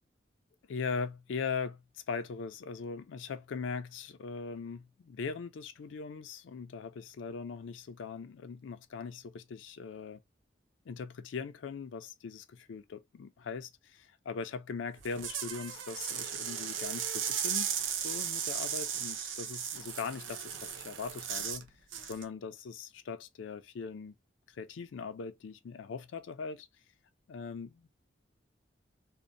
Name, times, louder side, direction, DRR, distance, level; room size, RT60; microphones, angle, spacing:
voice 1, 0.7-10.2 10.9-17.7 18.0-21.7 22.1-24.1 24.5-26.7 27.3-27.9, left 5 dB, 80° left, 0.4 m, -40 dB
sound 1, 15.0-21.6 21.9-22.2, right 8 dB, 85° right, 0.5 m, -36 dB
2.7 x 2.0 x 2.5 m
head